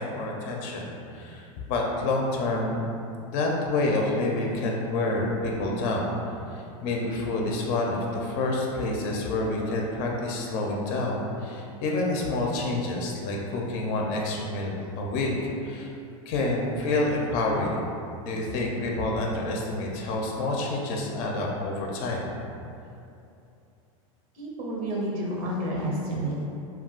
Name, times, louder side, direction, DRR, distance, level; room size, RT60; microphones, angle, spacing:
voice 1, 0.0-2.8 3.3-15.3 15.6-15.9 16.3-17.8 18.2-22.3, left 2 dB, 50° left, -1 dB, 0.5 m, -28 dB
voice 2, 24.4-26.5, right 1 dB, 75° right, -4 dB, 0.8 m, -30 dB
2.3 x 2.3 x 3.6 m, 2.7 s
supercardioid pair, 120°, 18 cm